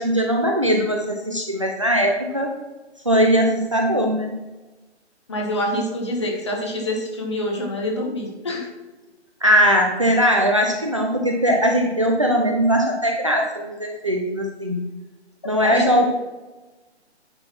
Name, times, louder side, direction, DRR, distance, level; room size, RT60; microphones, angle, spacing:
voice 1, 0.0-2.5 3.0-4.3 9.4-14.8 15.5-16.1, equal, 30° right, 1 dB, 0.6 m, -20 dB
voice 2, 5.3-8.7 15.6-16.0, left 1 dB, 25° left, 1 dB, 1.3 m, -26 dB
9.6 x 4.0 x 5.9 m, 1.1 s
hypercardioid pair, 175°, 34 cm